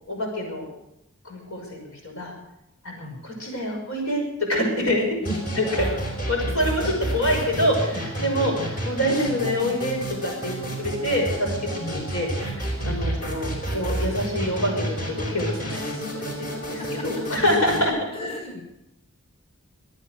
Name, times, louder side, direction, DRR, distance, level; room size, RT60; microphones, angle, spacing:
voice 1, 0.1-0.7 1.2-2.3 2.8-4.2 4.5-5.2 5.6-5.9 6.3-8.5 8.8-10.5 10.8-11.5 11.9-12.3 12.8-13.5 13.7-15.0 15.3-17.9, equal, 75° left, 1 dB, 6.1 m, -26 dB
sound 1, 5.2-17.8, right 1 dB, 40° left, 4.6 m, -30 dB
voice 2, 5.2-6.1 6.6-7.3 8.2-8.5 11.8-12.1 12.9-13.1 16.8-17.4 18.1-18.6, left 1 dB, 25° left, 1 dB, 2.0 m, -36 dB
23.5 x 9.1 x 6.5 m, 0.86 s
head